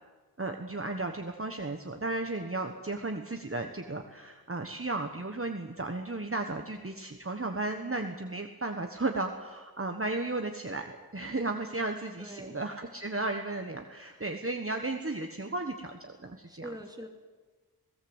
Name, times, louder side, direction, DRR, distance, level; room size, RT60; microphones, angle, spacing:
voice 1, 0.4-16.6, right 2 dB, 35° right, 4 dB, 1.4 m, -34 dB
voice 2, 12.2-12.6 13.9-14.2 16.5-17.1, right 1 dB, 10° right, 3 dB, 2.8 m, -44 dB
18.5 x 18.0 x 8.2 m, 1.3 s
wide cardioid pair, 45°, 38 cm